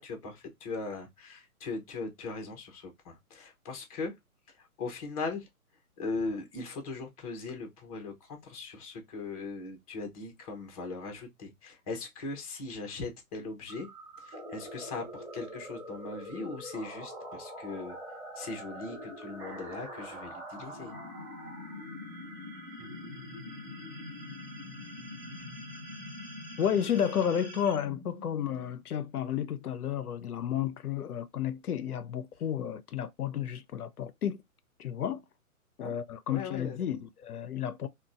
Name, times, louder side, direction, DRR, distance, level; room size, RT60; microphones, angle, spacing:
voice 1, 0.0-4.1 4.5-5.5 6.0-13.9 14.2-18.0 18.3-21.0 35.8-36.0 36.3-36.8, left 3 dB, 25° left, 0.8 m, -39 dB
sound 1, 13.7-28.8, left 1 dB, 10° right, 0.7 m, -44 dB
voice 2, 26.6-34.4 34.8-35.2 35.8-37.9, left 9 dB, 85° left, 0.5 m, -32 dB
3.6 x 2.2 x 2.4 m
figure-of-eight pair, 135°, 44 cm